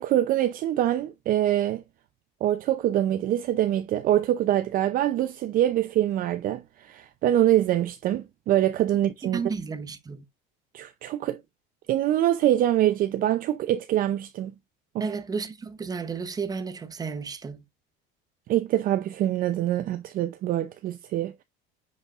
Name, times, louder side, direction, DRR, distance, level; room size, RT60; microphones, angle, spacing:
voice 1, 0.0-1.8 2.4-9.4 10.7-11.4 11.9-14.5 14.9-15.0 18.5-21.4, right 12 dB, 40° right, 0.6 m, -24 dB
voice 2, 9.2-10.2 15.0-17.6, right 5 dB, 20° right, 0.9 m, -32 dB
9.8 x 5.2 x 2.5 m
cardioid pair, 150°, 21 cm